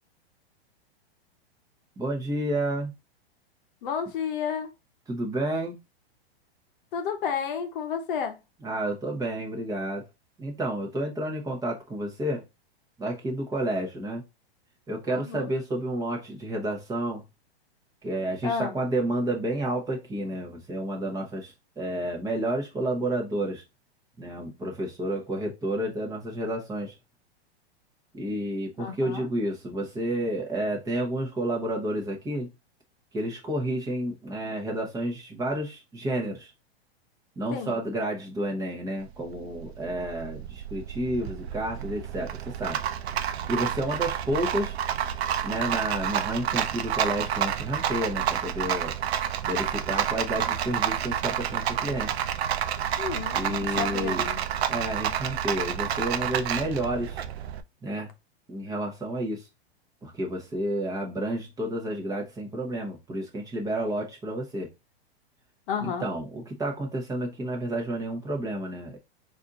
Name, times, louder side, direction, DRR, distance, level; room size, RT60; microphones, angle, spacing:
voice 1, 2.0-2.9 5.1-5.8 8.6-10.1 10.4-12.4 13.0-14.2 14.9-17.2 18.0-23.6 24.2-26.9 28.1-32.5 33.1-36.5 37.4-42.8 43.5-44.7 45.4-48.9 49.4-52.1 53.3-54.2 54.7-57.2 57.8-58.1 58.5-59.4 60.0-64.7 65.8-69.0, right 1 dB, 10° right, 1.0 m, -30 dB
voice 2, 3.8-4.7 6.9-8.4 15.1-15.5 18.4-18.7 28.8-29.3 37.5-37.7 53.0-54.4 65.7-66.1, left 7 dB, 55° left, 0.9 m, -31 dB
Rattle, 39.0-57.6, right 10 dB, 80° right, 0.6 m, -29 dB
4.3 x 2.7 x 3.7 m
hypercardioid pair, 145°, 31 cm